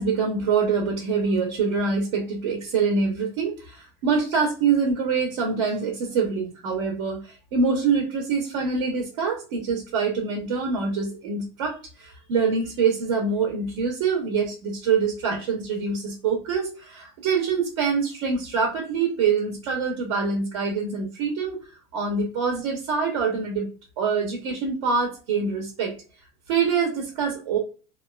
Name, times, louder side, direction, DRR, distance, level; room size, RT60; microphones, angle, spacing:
voice 1, 0.0-21.6 21.9-23.7 24.0-25.9 26.5-27.6, right 5 dB, 75° right, 1 dB, 0.8 m, -25 dB
2.5 x 2.3 x 2.2 m, 0.34 s
supercardioid pair, 160°, 15 cm